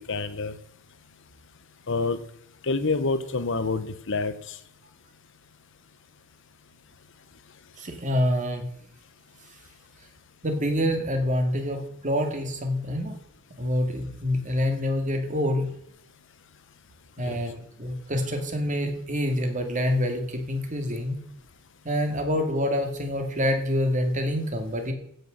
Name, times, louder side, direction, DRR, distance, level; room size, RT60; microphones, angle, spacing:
voice 1, 0.1-0.6 1.9-2.2 2.6-4.6 17.2-17.4, left 3 dB, 60° left, 13 dB, 1.1 m, -27 dB
voice 2, 7.8-8.7 10.4-13.1 13.6-15.7 17.2-21.2 21.8-24.9, left 1 dB, 35° right, 4 dB, 2.4 m, -26 dB
16.0 x 6.6 x 6.6 m, 0.69 s
head